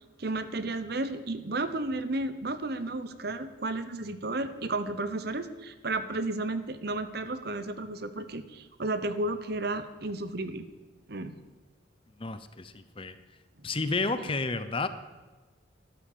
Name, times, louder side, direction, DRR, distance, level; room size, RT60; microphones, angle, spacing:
voice 1, 0.2-10.7 11.1-11.4 14.2-14.3, right 2 dB, 55° right, 12 dB, 1.0 m, -33 dB
voice 2, 12.2-13.2 13.6-14.9, left 3 dB, 30° left, 12 dB, 0.7 m, -31 dB
13.0 x 12.5 x 6.8 m, 1.2 s
head